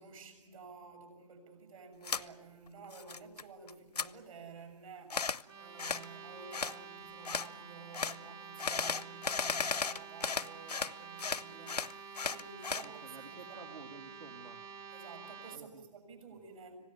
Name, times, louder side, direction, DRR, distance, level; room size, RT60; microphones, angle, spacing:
voice 1, 0.0-13.6 14.9-16.8, right 5 dB, 60° right, 5 dB, 7.0 m, -52 dB
sound 1, 2.0-2.2 2.7-3.4 3.7-4.1 5.1-5.4 5.8-6.1 6.5-6.8 7.2-7.5 7.9-8.2 8.6-10.9 11.2-12.9, left 5 dB, 85° left, 0.7 m, -35 dB
sound 2, 5.4-15.6, right 6 dB, 15° right, 0.9 m, -49 dB
voice 2, 12.8-14.6 15.5-15.8 16.3-16.4, right 4 dB, 75° right, 2 dB, 2.5 m, -52 dB
26.0 x 17.0 x 9.5 m, 1.1 s
figure-of-eight pair, 135°, 20 cm